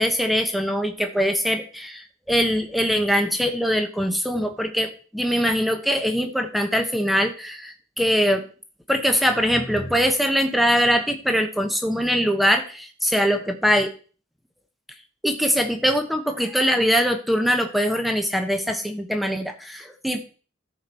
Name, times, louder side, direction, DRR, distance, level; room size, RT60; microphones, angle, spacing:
voice 1, 0.0-8.4 8.9-13.9 15.2-20.2, equal, ahead, 6 dB, 1.2 m, -22 dB
13.5 x 5.9 x 4.5 m, 0.38 s
head